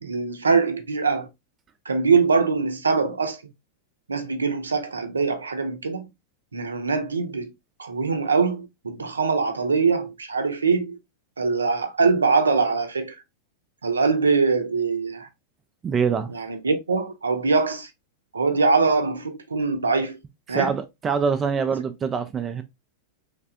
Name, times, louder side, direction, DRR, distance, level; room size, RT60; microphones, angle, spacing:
voice 1, 0.0-1.3 1.9-3.4 4.1-6.1 6.5-7.5 7.8-11.0 11.4-13.2 13.8-15.3 16.3-17.9 18.3-20.2 20.5-20.8, right 4 dB, 75° right, 0.6 m, -23 dB
voice 2, 15.8-16.3 20.5-22.6, right 6 dB, 20° right, 0.4 m, -24 dB
3.2 x 3.2 x 2.5 m
figure-of-eight pair, 90°, 0 cm